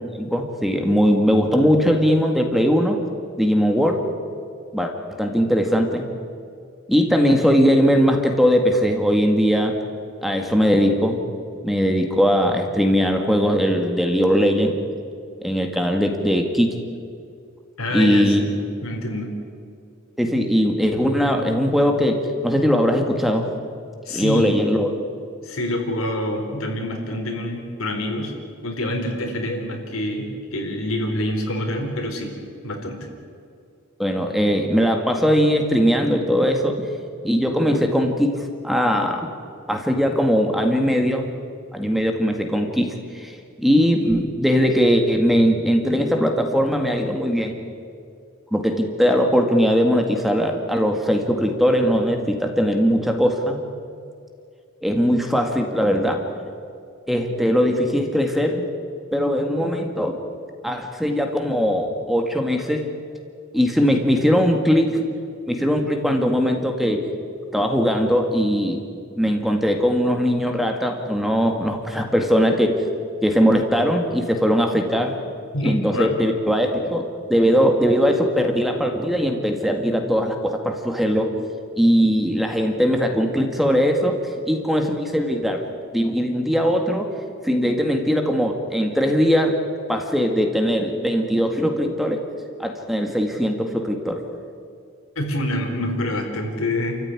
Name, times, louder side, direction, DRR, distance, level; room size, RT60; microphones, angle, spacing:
voice 1, 0.2-3.0 3.4-4.0 4.7-4.9 5.2-6.1 6.9-9.7 10.2-11.2 11.6-14.8 15.4-16.8 17.9-18.4 20.2-23.5 24.1-24.9 34.0-36.8 37.2-38.3 38.6-39.3 39.7-41.3 41.7-47.6 48.5-53.6 54.8-56.2 57.1-58.7 59.1-60.2 60.6-62.8 63.5-65.1 65.5-67.1 67.5-68.8 69.2-72.8 73.2-75.2 75.6-81.3 81.8-84.2 84.5-85.6 85.9-87.1 87.4-89.5 89.9-92.2 92.6-94.2, equal, ahead, 3 dB, 1.9 m, -20 dB
voice 2, 17.8-18.6 18.8-19.3 24.1-24.6 25.4-28.3 28.6-32.3 32.6-33.0 75.5-76.2 95.2-97.0, left 1 dB, 75° left, 3 dB, 4.2 m, -26 dB
29.0 x 14.5 x 9.8 m, 2.4 s
head